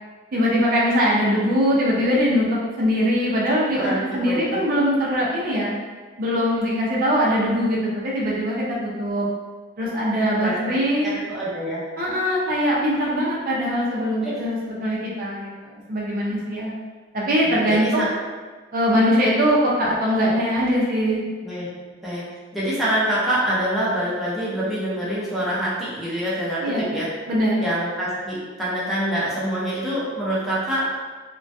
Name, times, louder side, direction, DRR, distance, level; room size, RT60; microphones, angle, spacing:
voice 1, 0.3-5.7 6.2-9.3 9.8-11.2 12.0-16.7 17.1-18.1 18.7-21.2 26.6-27.0 27.3-27.6, equal, 50° right, -5 dB, 0.5 m, -22 dB
voice 2, 3.8-4.6 10.4-10.8 11.0-11.8 14.2-14.5 17.4-18.1 21.4-21.7 22.0-22.2 22.5-27.1 27.6-30.9, equal, ahead, -10 dB, 0.6 m, -26 dB
2.3 x 2.2 x 2.5 m, 1.4 s
head